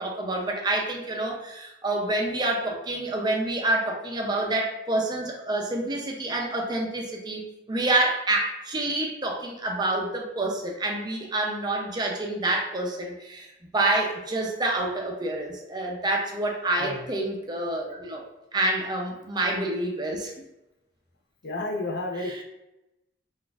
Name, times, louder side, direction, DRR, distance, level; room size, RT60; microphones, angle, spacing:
voice 1, 0.0-18.2 18.5-20.3, right 2 dB, 25° right, 0 dB, 0.5 m, -27 dB
voice 2, 21.4-22.4, left 2 dB, 60° left, 1 dB, 0.6 m, -31 dB
3.9 x 2.4 x 2.3 m, 0.92 s
head